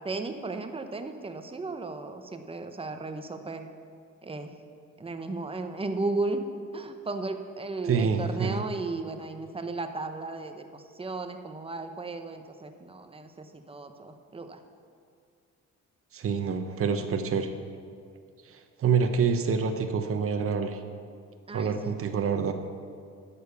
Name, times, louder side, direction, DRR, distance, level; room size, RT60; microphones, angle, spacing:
voice 1, 0.0-3.7 4.2-4.6 5.0-6.4 6.7-14.6 21.5-22.0, right 3 dB, 20° right, 7 dB, 0.9 m, -35 dB
voice 2, 7.9-8.6 16.1-17.5 18.5-20.8 21.5-22.5, right 6 dB, 45° right, 6 dB, 0.9 m, -27 dB
11.0 x 7.0 x 6.9 m, 2.3 s
cardioid pair, 90°, 30 cm